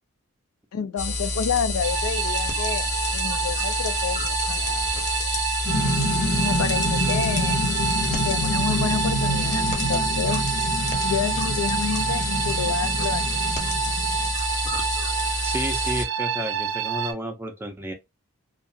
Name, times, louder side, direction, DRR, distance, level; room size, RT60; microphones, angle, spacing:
voice 1, 0.7-4.9 6.4-7.6 8.2-10.4 11.0-13.4, left 7 dB, 85° left, 0.4 m, -29 dB
sound 1, 1.0-16.0, left 3 dB, 30° left, 0.6 m, -28 dB
sound 2, 1.8-17.1, right 8 dB, 70° right, 0.5 m, -28 dB
sound 3, 5.7-14.3, left 1 dB, 70° left, 0.8 m, -28 dB
voice 2, 15.4-17.9, right 1 dB, 10° right, 0.4 m, -31 dB
2.4 x 2.2 x 2.6 m
head